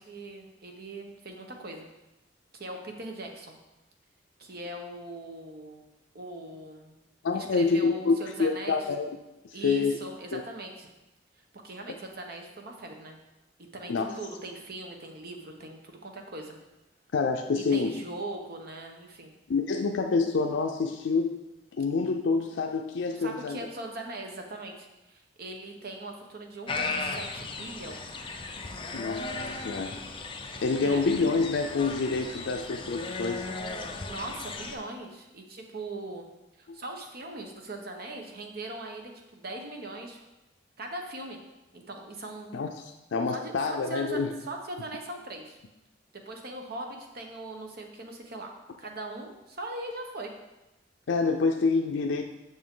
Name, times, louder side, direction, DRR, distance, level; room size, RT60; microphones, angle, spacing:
voice 1, 0.0-1.9 2.6-3.6 4.4-5.8 6.1-6.9 7.3-8.8 9.5-10.9 11.6-13.2 13.6-16.6 17.6-19.3 23.2-28.1 30.8-31.1 34.1-36.3 36.6-40.2 40.8-41.4 41.7-42.6 43.3-44.2 44.5-45.6 46.1-50.3, right 2 dB, 60° right, 3 dB, 1.0 m, -40 dB
voice 2, 7.2-9.0 9.4-10.0 10.3-10.4 13.9-14.2 17.1-18.0 19.5-21.4 21.7-23.6 28.9-30.0 30.6-33.5 36.7-36.8 42.5-44.3 51.1-52.2, left 4 dB, 85° left, 4 dB, 0.5 m, -27 dB
sound 1, 26.7-34.8, left 3 dB, 30° left, 0.6 m, -36 dB
7.3 x 6.2 x 3.8 m, 0.99 s
head